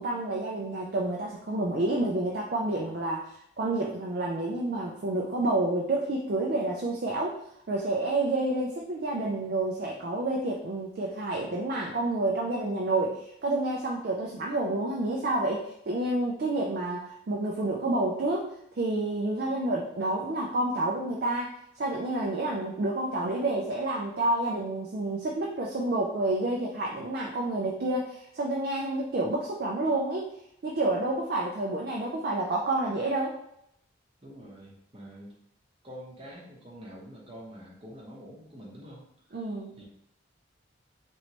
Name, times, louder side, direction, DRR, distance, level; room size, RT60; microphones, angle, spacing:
voice 1, 0.0-7.4 7.7-30.3 30.6-33.4 39.3-39.8, right 2 dB, 50° right, -2 dB, 0.4 m, -29 dB
voice 2, 34.2-35.4 35.8-39.1 39.8-39.9, equal, 25° right, -3 dB, 0.8 m, -46 dB
3.1 x 3.0 x 2.9 m, 0.75 s
head